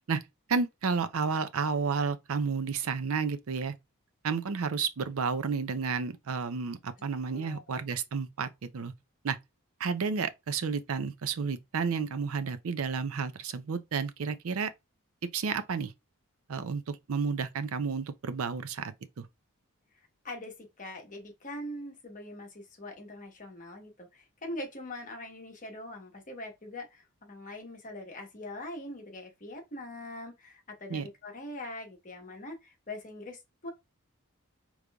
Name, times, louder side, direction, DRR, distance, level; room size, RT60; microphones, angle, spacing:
voice 1, 0.5-3.7 4.2-8.9 9.2-9.4 9.8-14.7 15.3-15.9 16.5-19.3 30.9-31.1, right 5 dB, 65° right, 0.5 m, -31 dB
voice 2, 7.3-7.8 20.2-33.7, left 1 dB, 35° left, 1.0 m, -42 dB
5.1 x 3.1 x 2.3 m
head